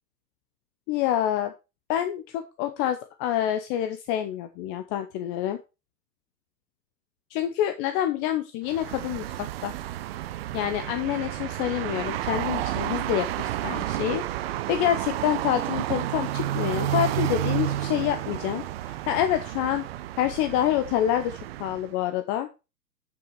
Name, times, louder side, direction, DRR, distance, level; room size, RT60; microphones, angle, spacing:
voice 1, 0.9-1.5 1.9-5.6 7.3-9.8 10.5-19.8 20.2-22.5, left 11 dB, 20° left, 8 dB, 0.6 m, -27 dB
sound 1, 8.6-21.9, right 13 dB, 40° right, 0.7 m, -31 dB
10.5 x 6.0 x 4.6 m, 0.28 s
hypercardioid pair, 125°, 49 cm